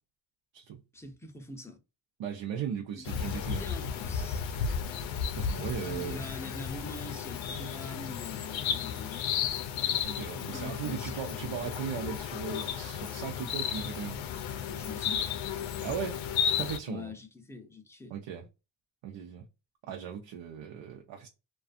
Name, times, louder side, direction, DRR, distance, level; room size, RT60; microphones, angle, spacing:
voice 1, 0.9-1.8 3.0-3.1 3.4-4.5 5.6-9.6 10.4-11.2 14.7-15.3 16.9-18.1, left 2 dB, 5° left, 0.4 m, -44 dB
voice 2, 2.2-3.6 5.4-6.2 10.0-14.2 15.8-16.2 16.6-17.1 18.1-18.5 19.0-19.5 19.9-21.3, right 8 dB, 85° right, 0.6 m, -37 dB
sound 1, 3.1-16.8, left 8 dB, 85° left, 0.5 m, -33 dB
Bell, 3.1-16.9, left 7 dB, 45° left, 0.7 m, -55 dB
2.5 x 2.3 x 2.4 m
wide cardioid pair, 135°, 45 cm